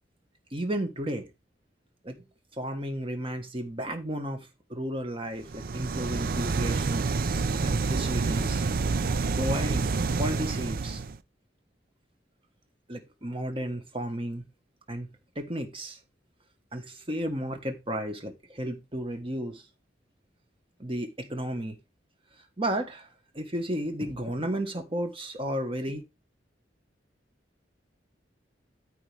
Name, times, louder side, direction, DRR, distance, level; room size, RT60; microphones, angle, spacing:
voice 1, 0.5-1.3 2.0-2.2 2.6-7.1 7.6-8.7 9.4-11.0 12.9-14.5 14.9-15.1 15.3-16.0 16.7-19.6 20.8-21.8 22.6-23.1 23.3-26.0, equal, 30° right, 1.5 m, -33 dB
sound 1, 5.4-11.2, right 4 dB, 50° right, 0.5 m, -28 dB
13.5 x 4.8 x 3.5 m
head